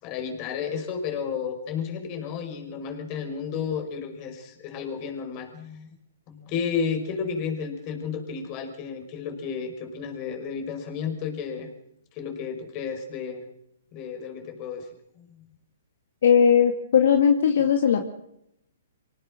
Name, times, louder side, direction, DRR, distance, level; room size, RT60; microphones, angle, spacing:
voice 1, 0.0-5.9 6.3-11.7 12.1-13.4 13.9-14.9 15.2-15.3, left 6 dB, 35° left, 5 dB, 5.7 m, -32 dB
voice 2, 16.2-18.0, left 7 dB, 65° left, 5 dB, 2.1 m, -18 dB
26.0 x 18.0 x 6.4 m, 0.78 s
hypercardioid pair, 135°, 0 cm